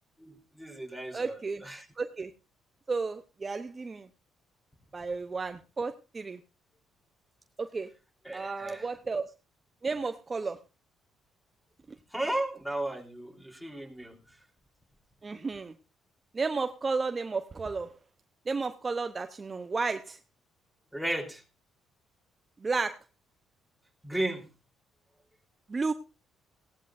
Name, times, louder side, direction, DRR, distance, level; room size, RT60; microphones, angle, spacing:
voice 1, 0.2-1.9 8.3-8.9 12.1-14.1 20.9-21.4 24.0-24.4, right 1 dB, ahead, 3 dB, 3.5 m, -34 dB
voice 2, 1.1-1.6 2.0-2.3 2.9-4.1 4.9-6.4 7.6-7.9 8.3-9.3 9.8-10.6 15.2-15.7 16.3-17.9 18.5-20.2 22.6-23.0 25.7-25.9, right 4 dB, 30° right, 8 dB, 0.8 m, -32 dB
18.5 x 16.0 x 2.6 m, 0.29 s
cardioid pair, 80°, 0 cm